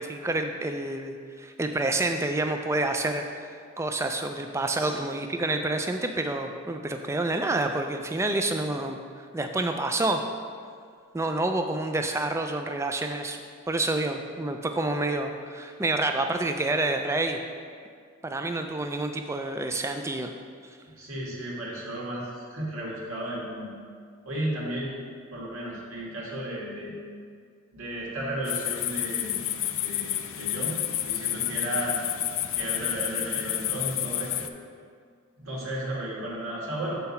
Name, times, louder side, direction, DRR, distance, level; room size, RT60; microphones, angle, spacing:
voice 1, 0.0-10.2 11.1-13.4 13.7-17.4 18.2-20.3, right 2 dB, 15° right, 5 dB, 0.3 m, -28 dB
voice 2, 21.0-23.7 24.3-24.9 25.3-27.0 27.7-29.4 29.8-32.0 32.5-34.5 35.4-37.0, right 1 dB, 80° right, -4 dB, 1.8 m, -34 dB
sound 1, 28.4-34.5, left 12 dB, 70° left, 0.4 m, -30 dB
6.9 x 5.7 x 4.3 m, 2.1 s
head